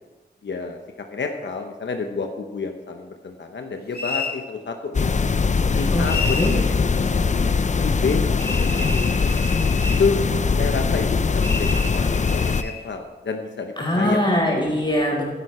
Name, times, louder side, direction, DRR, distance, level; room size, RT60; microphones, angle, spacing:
voice 1, 0.4-0.8 1.1-5.1 5.7-7.2 7.8-9.2 10.0-10.2 10.6-14.5, left 4 dB, 85° left, 4 dB, 0.9 m, -29 dB
sound 1, 3.9-4.4 6.0-6.6 8.4-10.1 11.4-12.8, left 3 dB, 60° left, 1.4 m, -30 dB
sound 2, 4.9-12.6, left 4 dB, 40° left, 0.5 m, -21 dB
voice 2, 5.9-6.5 13.8-15.2, left 1 dB, 25° left, -1 dB, 4.1 m, -22 dB
11.5 x 11.0 x 4.3 m, 1.2 s
wide cardioid pair, 95°, 18 cm